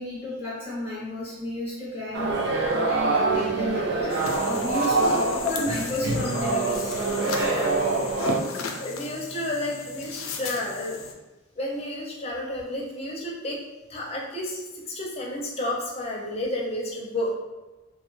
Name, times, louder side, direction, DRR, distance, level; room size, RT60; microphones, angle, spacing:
voice 1, 0.0-2.3 2.8-6.9, left 1 dB, 10° right, -9 dB, 0.7 m, -32 dB
sound 1, 2.1-8.4, right 3 dB, 50° right, 0.4 m, -25 dB
sound 2, 4.1-11.1, left 4 dB, 80° left, 0.4 m, -35 dB
voice 2, 5.1-5.5 5.8-5.9 7.4-7.7 8.6-11.0 11.6-13.6 13.9-17.3, left 1 dB, 30° left, -3 dB, 0.5 m, -31 dB
3.1 x 2.2 x 3.1 m, 1.1 s
head